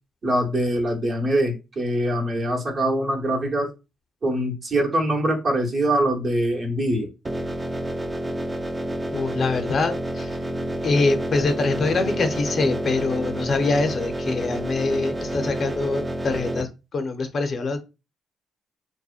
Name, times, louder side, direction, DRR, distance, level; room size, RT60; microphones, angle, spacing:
voice 1, 0.2-3.7 4.2-7.1, right 1 dB, 45° right, 0 dB, 0.9 m, -23 dB
sound 1, 7.2-16.6, right 1 dB, 20° right, 0.4 m, -29 dB
voice 2, 9.1-10.4 10.8-17.8, left 3 dB, 50° left, 7 dB, 0.6 m, -24 dB
2.7 x 2.1 x 2.4 m, 0.27 s
cardioid pair, 90°, 0 cm